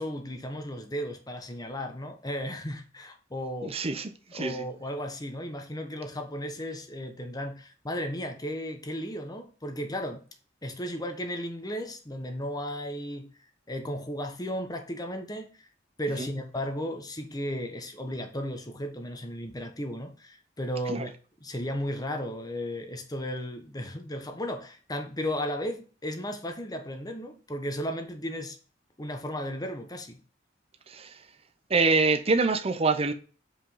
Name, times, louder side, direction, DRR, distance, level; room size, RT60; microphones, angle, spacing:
voice 1, 0.0-3.8 4.3-10.2 10.6-13.3 13.7-15.7 16.0-21.1 21.4-28.6 29.0-30.2, equal, 20° left, 1.2 m, -35 dB
voice 2, 3.6-4.6 16.2-16.3 20.9-21.1 30.9-31.2 31.7-33.1, right 3 dB, 30° right, 0.8 m, -26 dB
5.2 x 5.1 x 5.6 m
head